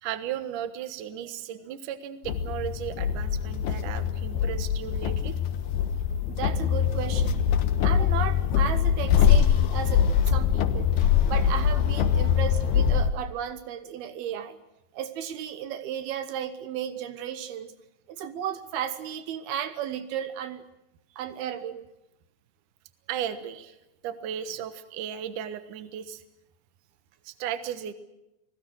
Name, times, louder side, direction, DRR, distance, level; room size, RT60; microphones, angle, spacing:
voice 1, 0.0-5.3 23.1-23.8 24.0-26.2 27.2-27.9, right 9 dB, 65° right, 9 dB, 2.6 m, -35 dB
sound 1, 2.3-13.1, left 8 dB, 85° left, 3.3 m, -23 dB
voice 2, 6.3-7.5 7.8-14.6 14.9-17.7 18.1-20.6 21.2-21.9, right 9 dB, 80° right, 10 dB, 3.1 m, -34 dB
29.5 x 20.0 x 6.4 m, 0.91 s
omnidirectional pair, 4.4 m